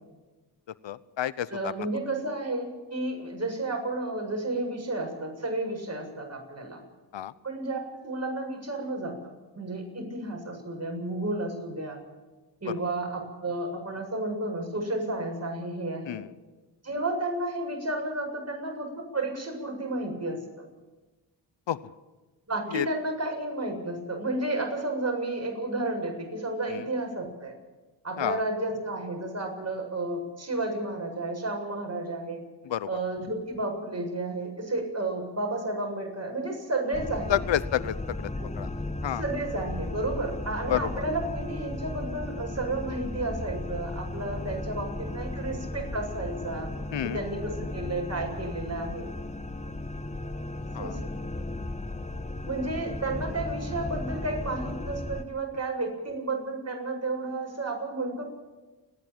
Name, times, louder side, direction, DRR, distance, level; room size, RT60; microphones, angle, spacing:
voice 1, 0.8-1.7 7.1-7.3 16.1-16.3 21.7-21.8 22.7-22.9 26.7-26.8 28.2-28.4 32.7-32.9 37.3-38.3 38.6-38.7 39.0-39.2 40.7-40.9 46.9-47.2 50.7-50.9, left 11 dB, 75° left, 18 dB, 0.9 m, -29 dB
voice 2, 1.5-6.8 7.4-9.2 9.6-12.0 12.6-16.2 16.8-20.7 22.5-27.5 28.0-32.4 32.8-37.4 38.3-38.5 39.0-46.7 47.0-49.1 50.8-51.0 52.5-58.2, right 2 dB, 35° right, 2 dB, 7.7 m, -32 dB
sound 1, 36.9-55.2, left 2 dB, 15° left, 1.7 m, -35 dB
30.0 x 10.5 x 8.9 m, 1.2 s
cardioid pair, 50°, 45 cm